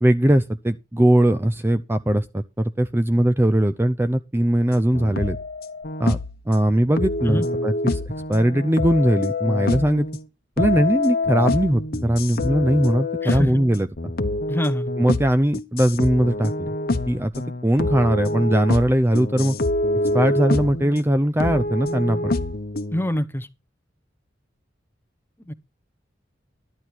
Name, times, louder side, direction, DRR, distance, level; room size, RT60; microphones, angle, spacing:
voice 1, 0.0-5.4 6.0-6.2 6.5-8.0 8.3-10.1 10.6-13.9 15.0-16.7 17.1-17.3 17.6-19.6 20.1-22.3, right 1 dB, 15° right, 0.5 m, -20 dB
sound 1, 4.7-6.4 7.0-10.2 10.6-21.0 21.4-23.1, left 2 dB, 55° left, 1.1 m, -26 dB
voice 2, 13.2-13.5 14.5-14.9 22.9-23.5 25.4-25.5, equal, 10° left, 0.9 m, -25 dB
12.0 x 9.7 x 4.4 m
head